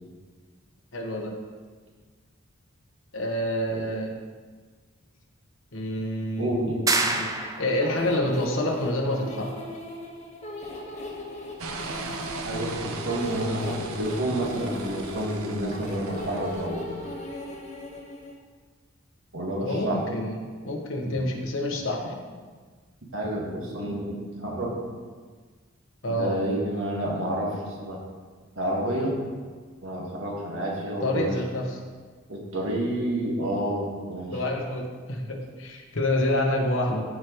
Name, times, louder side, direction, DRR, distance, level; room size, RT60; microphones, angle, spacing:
voice 1, 0.9-1.4 3.1-4.1 5.7-9.5 19.6-20.4 20.6-22.1 26.0-26.3 31.0-31.8 34.3-37.0, left 1 dB, 65° left, 1 dB, 1.2 m, -28 dB
voice 2, 6.4-7.0 12.4-16.9 19.3-20.0 21.0-21.2 23.1-24.8 26.1-28.0 28.5-29.2 29.8-31.3 32.3-34.4, right 1 dB, 65° right, -2 dB, 1.7 m, -29 dB
sound 1, 6.9-7.9, right 3 dB, 15° right, 0.4 m, -26 dB
sound 2, 7.8-18.3, left 1 dB, 35° left, 1.2 m, -39 dB
sound 3, 11.6-16.7, right 3 dB, 90° right, 0.7 m, -38 dB
14.0 x 4.7 x 3.1 m, 1.5 s
head